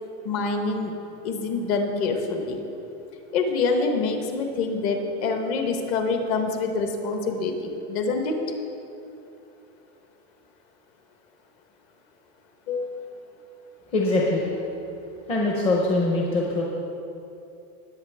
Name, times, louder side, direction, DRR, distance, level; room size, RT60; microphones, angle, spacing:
voice 1, 0.2-0.9 1.2-2.6 3.3-7.5 7.9-8.4 12.7-13.1, left 4 dB, 40° left, 4 dB, 1.3 m, -26 dB
voice 2, 13.9-14.7 15.3-16.6, left 2 dB, 15° left, -2 dB, 0.8 m, -23 dB
19.5 x 7.9 x 3.5 m, 2.8 s
supercardioid pair, 175°, 34 cm